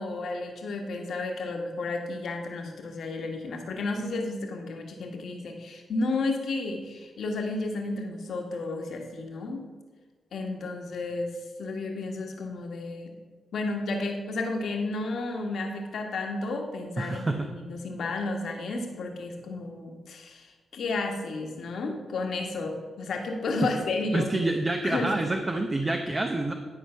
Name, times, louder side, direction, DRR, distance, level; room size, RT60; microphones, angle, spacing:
voice 1, 0.0-9.6 10.3-13.1 13.5-24.3 24.8-25.1, left 3 dB, 75° left, 2 dB, 1.5 m, -32 dB
voice 2, 17.0-17.5 23.6-23.7 24.1-26.5, right 2 dB, 30° right, 4 dB, 0.8 m, -27 dB
11.5 x 4.6 x 5.6 m, 1.4 s
cardioid pair, 60°, 0 cm